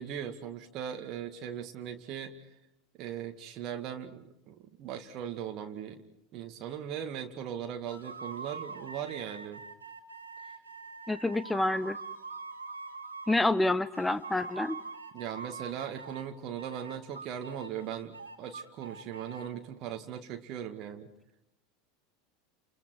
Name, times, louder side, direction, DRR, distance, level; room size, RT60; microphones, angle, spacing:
voice 1, 0.0-2.4 3.0-6.0 6.3-9.6 15.1-21.1, right 9 dB, 40° right, 5 dB, 2.1 m, -39 dB
sound 1, 7.9-13.5 13.9-16.3 16.6-19.5, right 4 dB, 80° right, 2.8 m, -44 dB
voice 2, 11.1-12.0 13.3-14.8, left 2 dB, 10° left, 14 dB, 1.2 m, -28 dB
29.5 x 29.0 x 4.7 m, 0.78 s
figure-of-eight pair, 80°, 0 cm